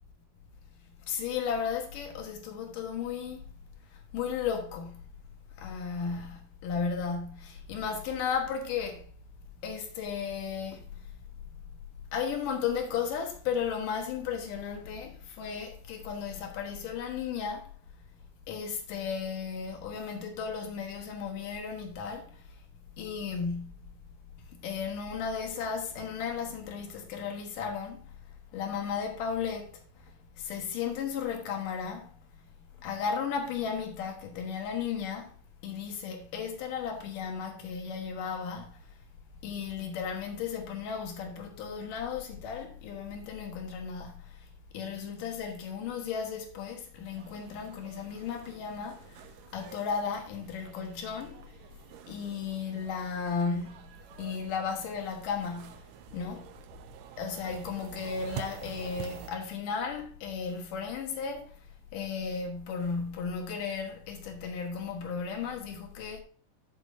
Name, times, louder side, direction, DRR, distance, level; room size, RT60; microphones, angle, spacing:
voice 1, 1.1-3.5 4.1-5.0 5.6-9.0 9.6-11.0 11.5-11.6 12.1-17.7 18.5-22.5 23.0-23.9 24.4-28.1 28.5-29.8 30.4-32.1 32.8-35.3 35.6-38.8 39.4-44.4 44.7-49.3 49.5-51.4 52.1-53.9 54.2-55.8 56.1-56.5 57.2-61.5 61.9-66.2, left 6 dB, 80° left, 3.0 m, -35 dB
sound 1, 47.1-59.3, right 9 dB, 75° right, 1.8 m, -48 dB
12.0 x 7.0 x 2.7 m
omnidirectional pair, 3.7 m